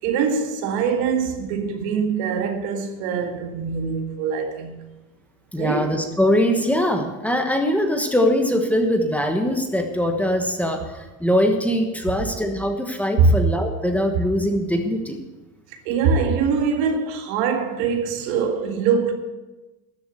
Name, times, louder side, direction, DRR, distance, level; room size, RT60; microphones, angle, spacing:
voice 1, 0.0-4.8 5.6-5.9 13.2-13.4 15.9-19.1, right 5 dB, 80° right, 1.9 m, -22 dB
voice 2, 5.5-15.2, equal, 5° left, 1.2 m, -22 dB
13.0 x 7.2 x 7.8 m
cardioid pair, 140°, 40 cm